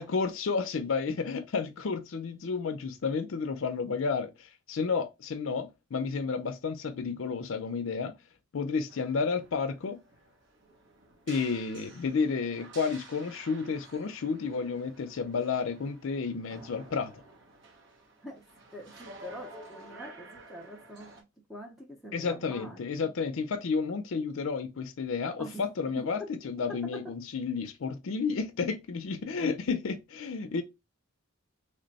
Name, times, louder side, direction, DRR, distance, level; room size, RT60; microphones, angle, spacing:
voice 1, 0.0-8.1 8.5-10.0 11.3-17.1 22.1-26.2 26.4-30.6, left 5 dB, 70° left, 0.5 m, -31 dB
sound 1, 8.9-21.2, right 2 dB, 60° right, 1.1 m, -51 dB
voice 2, 18.7-21.1 21.5-23.1 25.4-25.6 26.0-26.1 26.9-27.0, equal, ahead, 0.6 m, -44 dB
3.3 x 2.2 x 3.9 m
head